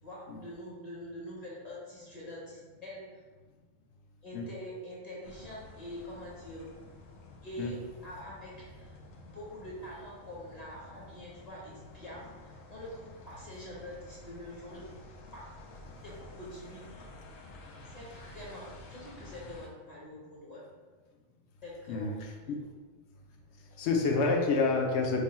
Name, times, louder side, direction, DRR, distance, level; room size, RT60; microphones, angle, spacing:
voice 1, 0.0-3.2 4.2-6.7 7.4-7.8 8.0-9.0 9.2-14.9 15.3-15.5 16.0-17.1 17.9-20.6 21.6-22.1, left 1 dB, 35° left, -6 dB, 0.7 m, -45 dB
sound 1, 5.2-19.7, left 2 dB, 85° left, 1.0 m, -51 dB
voice 2, 21.9-22.6 23.8-25.2, left 3 dB, 65° left, 1 dB, 0.8 m, -28 dB
3.3 x 2.2 x 4.1 m, 1.4 s
omnidirectional pair, 1.3 m